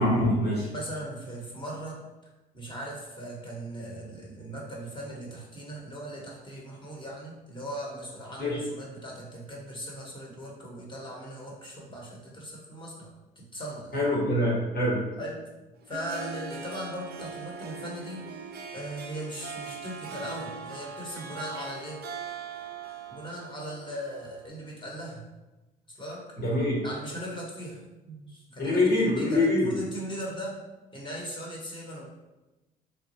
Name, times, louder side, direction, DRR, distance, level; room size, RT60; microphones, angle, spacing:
voice 1, 0.0-0.7 8.4-8.6 13.9-15.0 26.4-26.8 28.6-29.7, left 1 dB, 55° left, -5 dB, 1.5 m, -24 dB
voice 2, 0.7-2.0 2.5-13.1 13.4-14.0 15.2-15.4 15.9-18.3 18.7-22.0 23.1-25.2 25.9-26.2 26.8-30.6 30.9-32.1, equal, 25° left, -3 dB, 1.2 m, -39 dB
Harp, 15.7-24.5, right 5 dB, 55° right, 0.4 m, -41 dB
3.2 x 2.2 x 2.8 m, 1.1 s
supercardioid pair, 60°, 20 cm